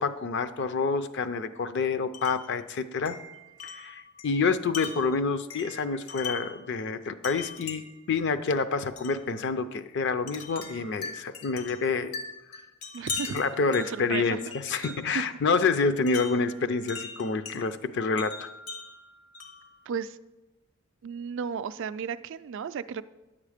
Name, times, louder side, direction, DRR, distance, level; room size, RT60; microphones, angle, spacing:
voice 1, 0.0-3.2 3.6-12.1 13.3-18.5, left 4 dB, 50° left, 12 dB, 0.5 m, -28 dB
Wind chime, 2.1-2.5 3.1-6.6 7.2-8.1 9.0-9.2 10.3-15.2 16.1-17.6 18.2-19.7, left 4 dB, 75° left, 1.2 m, -40 dB
voice 2, 12.9-13.4 13.7-14.4 14.7-15.2 19.9-20.2 21.0-23.0, right 7 dB, 55° right, 13 dB, 0.3 m, -34 dB
10.0 x 7.3 x 5.0 m, 1.1 s
head